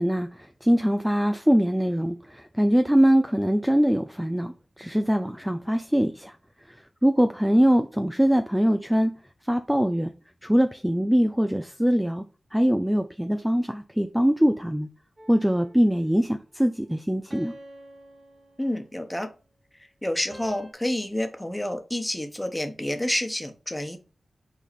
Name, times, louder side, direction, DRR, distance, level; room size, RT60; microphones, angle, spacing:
voice 1, 0.0-9.1 9.4-10.1 10.4-12.2 12.5-14.9 15.3-17.5, equal, 5° right, 0.5 m, -23 dB
sound 1, 15.2-16.2 17.3-19.2 20.3-20.7, right 1 dB, 30° right, 1.7 m, -48 dB
voice 2, 18.6-19.3 20.0-24.0, left 1 dB, 10° left, 1.3 m, -29 dB
5.8 x 4.0 x 4.2 m
cardioid pair, 55°, 0 cm